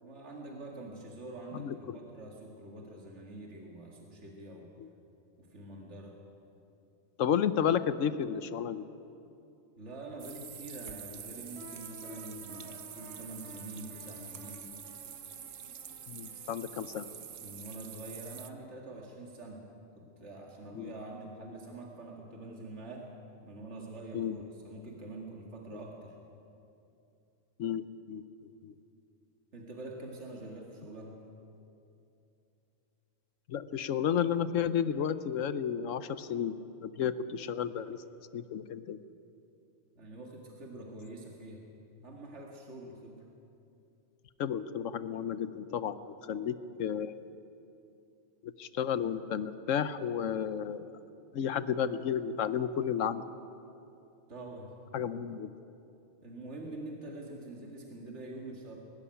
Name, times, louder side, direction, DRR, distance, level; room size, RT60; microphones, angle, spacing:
voice 1, 0.0-4.7 5.4-6.2 9.8-14.7 16.8-17.2 17.4-19.7 20.0-23.1 23.4-26.2 29.5-31.2 40.0-41.6 42.0-43.2 54.3-54.8 56.2-58.8, right 2 dB, 65° right, -1 dB, 2.4 m, -45 dB
voice 2, 1.5-2.0 4.8-4.9 7.2-8.8 16.1-17.1 20.7-20.9 24.1-24.4 25.7-25.8 27.6-27.8 28.1-28.2 28.6-28.7 33.5-38.0 38.3-39.0 44.4-46.0 46.3-47.2 48.4-50.9 51.3-53.2 54.9-55.5, left 8 dB, 85° left, 13 dB, 1.1 m, -32 dB
sound 1, 10.2-18.5, right 8 dB, 80° right, 1.2 m, -46 dB
sound 2, 11.6-18.3, left 2 dB, ahead, 4.4 m, -53 dB
21.5 x 13.0 x 10.0 m, 2.7 s
omnidirectional pair, 1.3 m